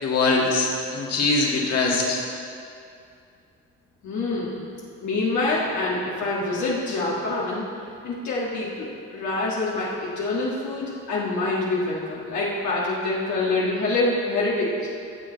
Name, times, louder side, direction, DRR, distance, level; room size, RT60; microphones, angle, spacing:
voice 1, 0.0-2.2, left 3 dB, 55° left, -2 dB, 1.9 m, -22 dB
voice 2, 4.0-4.6 5.0-7.6 8.0-14.9, left 2 dB, 70° left, -6 dB, 1.7 m, -26 dB
16.0 x 6.5 x 3.9 m, 2.5 s
cardioid pair, 90°, 30 cm